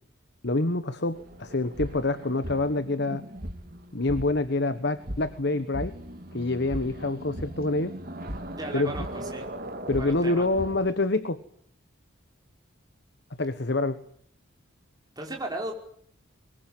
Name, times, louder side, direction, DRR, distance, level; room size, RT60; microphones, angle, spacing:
voice 1, 0.4-3.3 3.9-5.9 6.3-7.9 8.7-9.0 9.9-11.4 13.4-14.0, left 2 dB, 55° left, 12 dB, 1.2 m, -26 dB
sound 1, 1.1-10.9, equal, 45° right, 2.7 m, -38 dB
voice 2, 8.5-9.5 10.0-10.4 15.2-15.7, right 2 dB, 20° right, 1 dB, 5.4 m, -35 dB
23.0 x 21.5 x 9.2 m, 0.63 s
head